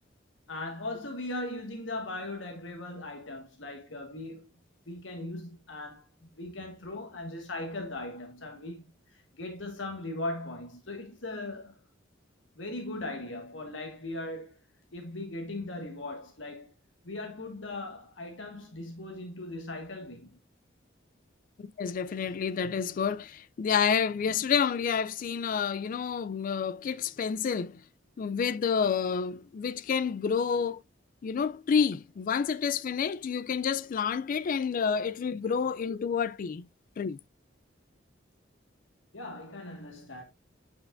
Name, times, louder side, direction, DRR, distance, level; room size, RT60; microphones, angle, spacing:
voice 1, 0.5-4.5 4.8-11.7 12.5-14.6 14.9-16.7 17.0-20.4 39.1-40.2, left 2 dB, 80° left, 1.7 m, -39 dB
voice 2, 21.6-27.8 28.2-30.8 31.2-36.6 37.0-37.2, left 6 dB, 45° left, 0.3 m, -29 dB
8.1 x 5.6 x 2.5 m
head